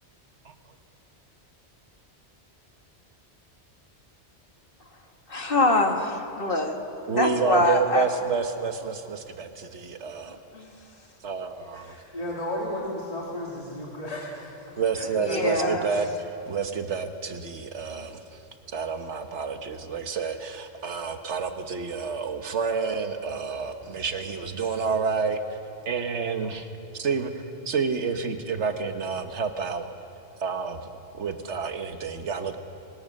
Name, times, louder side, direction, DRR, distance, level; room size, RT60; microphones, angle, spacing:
voice 1, 5.3-6.8 7.0-8.1 10.3-10.7 14.7-14.8 15.2-15.9, left 2 dB, 55° left, 4 dB, 1.9 m, -25 dB
voice 2, 7.1-10.4 11.2-11.9 14.8-18.2 18.7-25.4 25.9-26.7 26.9-27.3 27.7-29.8 30.4-32.6, right 5 dB, 90° right, 7 dB, 1.5 m, -29 dB
voice 3, 11.7-14.5 14.9-15.8, left 1 dB, 35° left, -4 dB, 2.6 m, -33 dB
23.0 x 20.0 x 6.6 m, 2.7 s
omnidirectional pair, 1.1 m